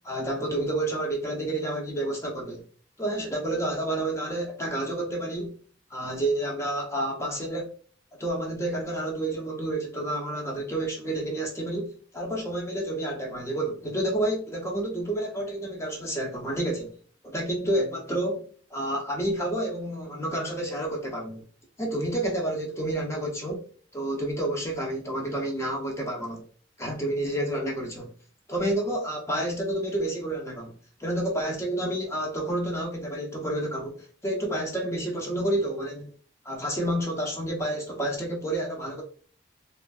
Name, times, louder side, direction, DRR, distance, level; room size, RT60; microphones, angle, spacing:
voice 1, 0.0-2.6 3.0-5.5 5.9-7.7 8.2-16.9 17.2-21.4 21.8-23.6 23.9-26.4 26.8-28.1 28.5-36.1 36.4-39.0, right 1 dB, 15° left, 0.7 m, -29 dB
3.2 x 2.5 x 2.3 m
head